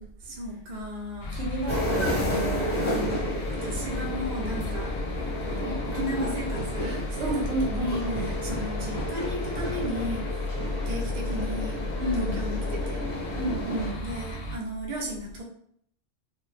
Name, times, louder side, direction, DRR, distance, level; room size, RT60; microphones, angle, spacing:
voice 1, 0.2-1.3 1.8-2.3 2.8-4.9 5.4-10.5 10.9-11.8 12.1-13.0 14.0-15.4, equal, 45° right, -3 dB, 0.7 m, -34 dB
sound 1, 1.2-14.6, left 3 dB, 70° left, 0.8 m, -34 dB
voice 2, 1.3-2.7 7.2-8.3 12.0-12.4 13.4-13.9, right 1 dB, 75° right, -2 dB, 1.0 m, -31 dB
sound 2, 1.7-13.9, equal, 40° left, 0.8 m, -32 dB
2.2 x 2.0 x 3.1 m, 0.66 s
omnidirectional pair, 1.2 m